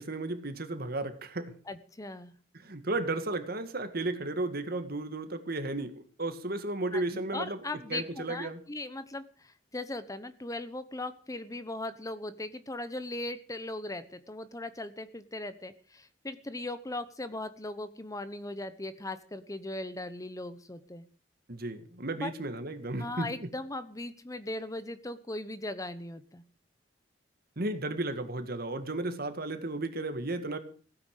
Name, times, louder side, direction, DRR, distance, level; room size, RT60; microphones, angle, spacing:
voice 1, 0.0-1.5 2.5-7.6 7.9-8.6 21.5-23.5 27.6-30.6, right 2 dB, 55° right, 9 dB, 1.9 m, -34 dB
voice 2, 1.7-2.3 6.9-21.1 22.2-22.3 23.0-26.4, left 2 dB, 20° left, 12 dB, 0.9 m, -39 dB
16.5 x 9.5 x 6.6 m, 0.42 s
head